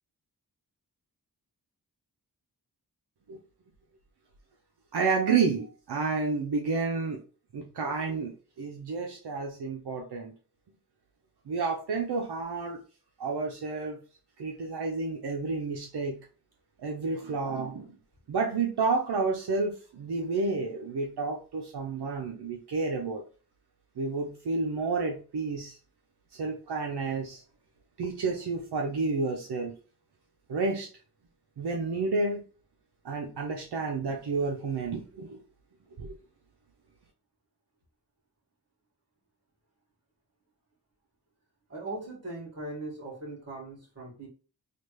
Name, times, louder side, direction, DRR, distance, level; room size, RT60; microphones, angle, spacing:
voice 1, 4.9-7.2 7.5-10.3 11.5-12.8 13.2-14.0 14.4-16.2 16.8-18.0 18.3-23.2 24.0-25.8 26.3-27.4 28.0-29.7 30.5-30.9 31.6-32.4 33.0-35.4 36.0-36.2, right 4 dB, 80° right, 1 dB, 0.7 m, -30 dB
voice 2, 41.7-44.3, right 2 dB, 40° right, -2 dB, 1.7 m, -39 dB
3.3 x 2.4 x 3.1 m, 0.36 s
wide cardioid pair, 80°, 39 cm